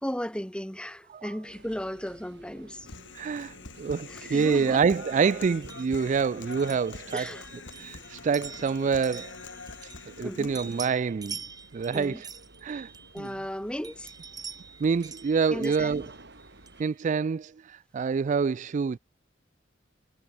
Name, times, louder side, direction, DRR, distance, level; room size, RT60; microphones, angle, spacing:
voice 1, 0.0-2.9 4.1-4.8 7.1-7.5 10.2-10.6 11.9-12.2 13.1-14.1 15.5-16.0, equal, 5° left, 2.5 m, -35 dB
sound 1, 1.5-16.8, right 2 dB, 65° right, 4.0 m, -54 dB
Human voice, 2.9-10.9, left 4 dB, 80° left, 2.3 m, -44 dB
voice 2, 3.1-7.3 7.8-9.3 10.2-11.4 11.7-12.2 12.6-12.9 13.2-13.3 14.8-16.1 16.8-19.0, right 5 dB, 40° right, 0.3 m, -27 dB
sound 2, 5.6-10.3 10.5-13.5 13.8-16.9, right 6 dB, 20° right, 1.0 m, -45 dB
head